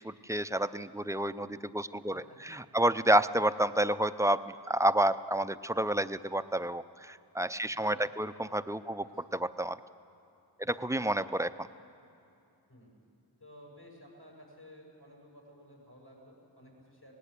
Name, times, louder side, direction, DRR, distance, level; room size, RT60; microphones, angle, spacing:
voice 1, 0.0-9.1 9.3-9.8 10.6-11.5, right 1 dB, 5° right, 13 dB, 0.5 m, -30 dB
voice 2, 2.1-2.4 2.9-3.2 7.7-8.5 9.0-9.2 10.8-10.9 12.7-12.9 13.4-17.1, equal, 65° left, -2 dB, 6.9 m, -55 dB
18.5 x 18.0 x 8.5 m, 2.7 s
cardioid pair, 40°, 42 cm